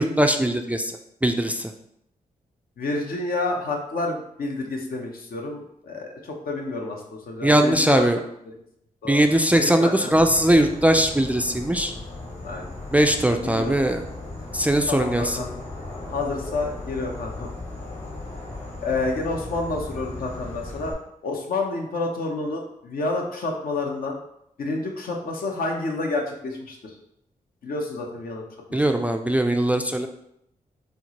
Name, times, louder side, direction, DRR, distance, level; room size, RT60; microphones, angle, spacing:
voice 1, 0.0-1.7 7.4-8.2 9.1-11.9 12.9-14.0 14.5-15.4 28.7-30.1, right 1 dB, 10° right, 5 dB, 0.3 m, -20 dB
voice 2, 2.8-8.0 9.0-9.2 9.6-10.1 12.4-12.7 13.4-13.7 14.9-15.5 16.1-17.5 18.8-20.9 21.2-24.2 24.6-26.9 27.6-28.4 28.7-29.0, left 3 dB, 70° left, 1 dB, 0.7 m, -29 dB
Insect / Frog, 10.1-20.9, left 2 dB, 45° left, 1.4 m, -37 dB
4.3 x 2.1 x 2.9 m, 0.75 s
cardioid pair, 50°, 16 cm